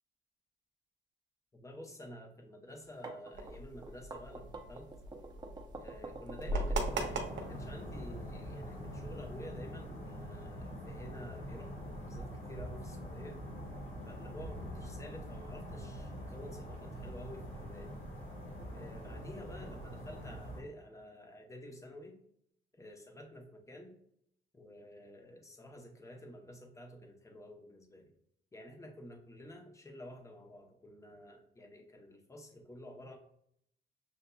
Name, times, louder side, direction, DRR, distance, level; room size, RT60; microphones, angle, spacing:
voice 1, 1.5-4.9 5.8-13.4 14.1-17.9 18.7-22.2 22.7-23.9 24.5-28.0 28.5-33.1, left 1 dB, 15° left, 2 dB, 0.8 m, -50 dB
sound 1, 2.8-8.0, right 3 dB, 20° right, 0.6 m, -47 dB
sound 2, 3.3-9.4, right 1 dB, 70° right, 0.7 m, -40 dB
sound 3, 6.8-20.6, equal, 85° left, 1.5 m, -44 dB
6.7 x 2.7 x 2.2 m, 0.70 s
cardioid pair, 115°, 20 cm